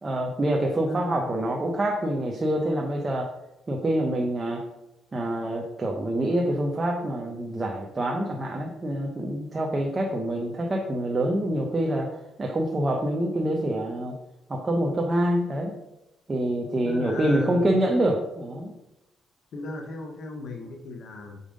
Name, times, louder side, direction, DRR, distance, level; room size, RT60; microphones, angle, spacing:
voice 1, 0.0-3.3 3.7-4.6 5.1-14.2 14.5-15.7 16.3-18.7, right 1 dB, 30° right, 0 dB, 1.0 m, -26 dB
voice 2, 0.9-1.3 16.8-17.8 19.5-21.4, left 2 dB, 70° left, 2 dB, 1.1 m, -36 dB
5.6 x 4.9 x 5.1 m, 0.93 s
cardioid pair, 90°, 0 cm